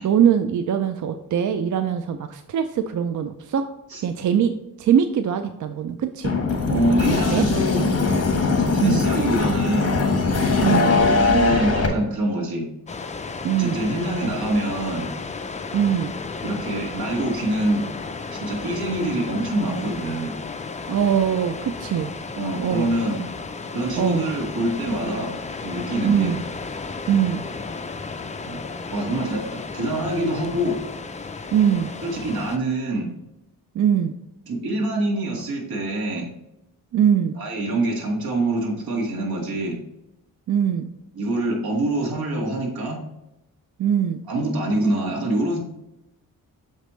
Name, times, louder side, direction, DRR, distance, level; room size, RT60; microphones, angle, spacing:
voice 1, 0.0-3.7 4.0-6.3 7.3-7.5 8.8-9.0 10.6-10.9 13.4-13.8 15.7-16.1 20.9-22.1 22.6-22.9 24.0-24.3 26.0-26.4 27.1-27.4 31.5-31.9 33.7-34.1 36.9-37.4 40.5-40.9 43.8-44.2, right 8 dB, 55° right, 8 dB, 0.5 m, -22 dB
sound 1, 6.2-11.9, left 4 dB, 40° left, 1.3 m, -20 dB
voice 2, 6.7-8.0 8.7-10.0 11.1-12.7 13.5-15.1 16.4-17.8 18.3-20.3 22.3-23.2 23.7-25.3 25.6-26.3 28.4-28.6 28.9-30.8 32.0-33.1 34.5-36.3 37.4-39.8 41.1-43.0 44.3-45.6, right 1 dB, 80° right, 0 dB, 1.8 m, -25 dB
sound 2, 12.9-32.6, left 4 dB, 20° left, 0.4 m, -34 dB
6.5 x 5.1 x 3.1 m, 0.88 s
wide cardioid pair, 115°, 36 cm